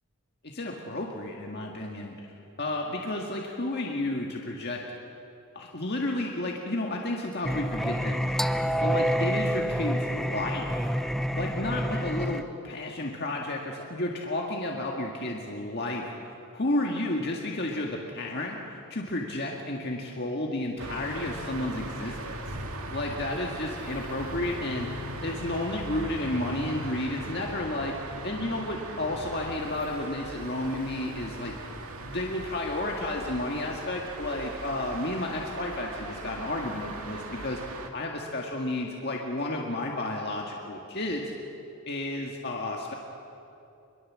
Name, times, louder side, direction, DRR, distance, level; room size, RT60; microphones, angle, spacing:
voice 1, 0.4-4.8 5.5-8.3 8.8-10.9 11.3-18.6 18.9-22.2 22.9-24.9 25.2-27.9 28.2-31.5 32.0-37.6 37.9-41.3 41.9-42.9, left 1 dB, 45° left, 0 dB, 1.8 m, -32 dB
Singing, 7.4-12.4, equal, ahead, 0.5 m, -28 dB
sound 1, 20.8-37.9, right 2 dB, 75° right, 2.1 m, -39 dB
24.0 x 22.5 x 7.5 m, 2.8 s
head